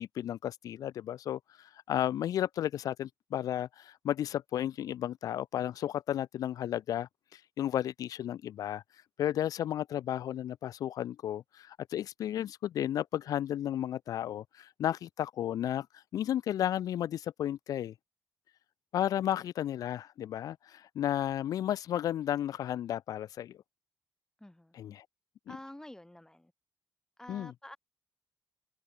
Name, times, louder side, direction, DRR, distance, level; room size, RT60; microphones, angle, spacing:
voice 1, 0.0-8.8 9.2-15.9 16.1-17.9 18.9-23.6 24.8-25.0 27.3-27.5, left 11 dB, 80° left, 0.5 m, -33 dB
voice 2, 24.4-24.8 25.5-26.5 27.2-27.8, left 1 dB, 10° left, 6.0 m, -49 dB
cardioid pair, 65°, 6 cm